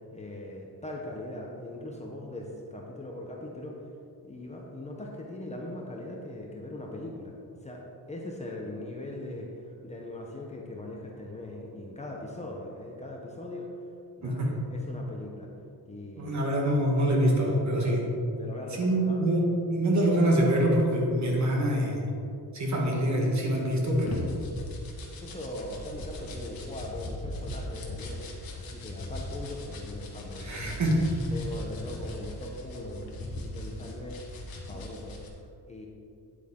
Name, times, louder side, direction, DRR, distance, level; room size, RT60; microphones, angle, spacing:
voice 1, 0.1-3.7 4.2-7.3 7.6-7.8 8.1-9.5 9.8-13.7 14.2-15.5 15.9-16.5 18.4-19.2 25.2-30.8 31.3-34.4 34.7-35.2 35.7-35.9, left 1 dB, 15° left, -1 dB, 0.8 m, -40 dB
voice 2, 16.2-18.0 18.7-19.4 19.8-22.0 22.5-24.2 30.4-31.0, right 1 dB, 45° right, -1 dB, 1.7 m, -25 dB
sound 1, 23.5-35.3, left 1 dB, 60° left, 1.6 m, -39 dB
9.6 x 8.2 x 3.7 m, 2.6 s
wide cardioid pair, 175°, 39 cm